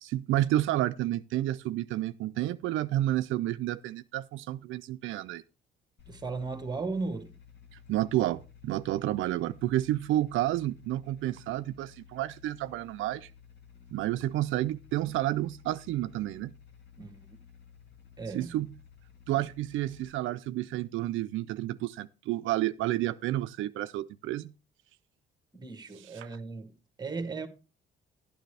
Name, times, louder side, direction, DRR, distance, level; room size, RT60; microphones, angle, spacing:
voice 1, 0.0-5.4 7.9-13.3 13.9-16.5 18.3-18.7 19.3-24.5 26.0-26.3, right 14 dB, 80° right, 0.4 m, -30 dB
sound 1, 6.0-20.1, left 7 dB, 60° left, 1.9 m, -55 dB
voice 2, 6.1-7.3 17.0-17.2 18.2-18.5 25.5-27.5, right 4 dB, 20° right, 1.6 m, -36 dB
12.0 x 9.2 x 3.3 m
cardioid pair, 90°, 20 cm